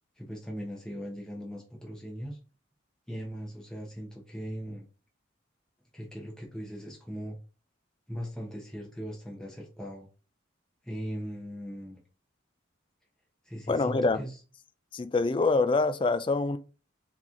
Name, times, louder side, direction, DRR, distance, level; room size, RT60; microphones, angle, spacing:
voice 1, 0.2-2.4 3.1-4.8 5.9-7.4 8.1-10.1 10.8-12.0 13.4-14.4, equal, 5° left, 0.8 m, -39 dB
voice 2, 13.7-14.2 14.9-16.6, left 3 dB, 25° left, 0.3 m, -25 dB
3.9 x 2.9 x 3.6 m
head